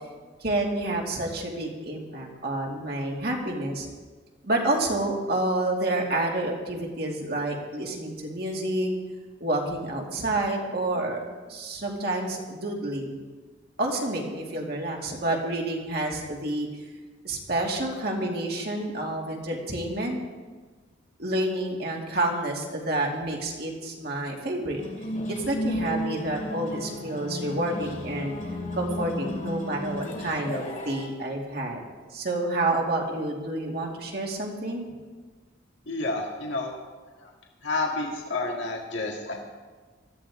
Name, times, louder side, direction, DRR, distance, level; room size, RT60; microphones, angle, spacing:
voice 1, 0.4-3.9 4.4-8.9 9.4-13.2 13.8-16.7 17.2-20.2 21.2-24.8 25.3-28.3 28.7-31.8 32.1-34.8, right 1 dB, 50° right, -1 dB, 2.5 m, -29 dB
sound 1, 24.8-31.1, left 1 dB, 40° left, 2.5 m, -33 dB
voice 2, 35.9-36.7 37.2-37.3 37.6-39.4, left 3 dB, 70° left, -1 dB, 1.8 m, -30 dB
19.5 x 14.5 x 3.7 m, 1.4 s
head